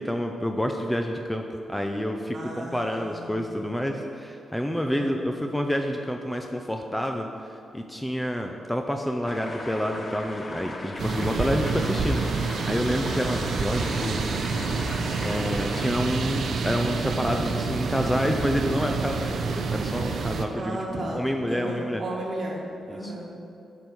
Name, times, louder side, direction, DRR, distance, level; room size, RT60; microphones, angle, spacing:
voice 1, 0.0-1.4 1.7-14.2 15.2-20.8 21.1-22.0 22.9-23.1, equal, 5° left, 3 dB, 0.5 m, -28 dB
voice 2, 2.3-4.0 4.8-5.3 20.6-21.2 21.5-23.3, right 1 dB, 45° right, -3 dB, 2.0 m, -35 dB
sound 1, 9.3-16.0, left 2 dB, 30° left, 0.9 m, -38 dB
sound 2, 11.0-20.5, right 4 dB, 65° right, 0.7 m, -28 dB
9.5 x 5.3 x 6.2 m, 2.6 s
cardioid pair, 95°, 0 cm